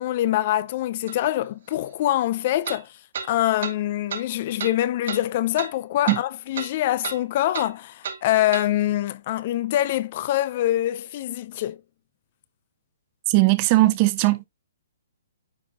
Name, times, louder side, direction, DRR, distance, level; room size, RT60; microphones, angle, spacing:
voice 1, 0.0-2.9 3.3-11.8, left 14 dB, 40° left, 0.4 m, -24 dB
sound 1, 1.1-1.2 2.6-2.8 3.1-3.3 3.6-3.7 4.1-4.2 4.6-4.7 5.1-5.2 5.6-5.7 6.1-6.2 6.5-6.7 7.0-7.2 7.5-7.7 8.0-8.2 8.5-8.7, right 6 dB, 60° right, 2.3 m, -31 dB
voice 2, 13.3-14.5, right 19 dB, 30° right, 0.9 m, -19 dB
9.5 x 4.6 x 2.4 m
hypercardioid pair, 155°, 0 cm